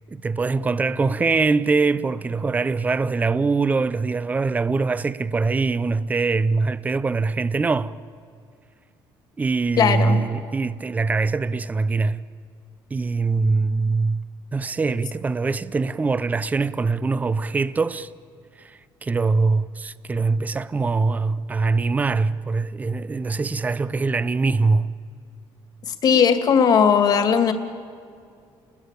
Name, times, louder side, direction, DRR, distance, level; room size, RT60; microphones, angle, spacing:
voice 1, 0.1-8.0 9.4-12.2 12.9-14.3 14.5-18.1 18.6-24.9, right 4 dB, 15° right, 0.6 m, -23 dB
voice 2, 9.8-10.2 25.9-27.5, left 7 dB, 45° left, 2.3 m, -18 dB
29.5 x 20.5 x 8.3 m
cardioid pair, 145°, 9 cm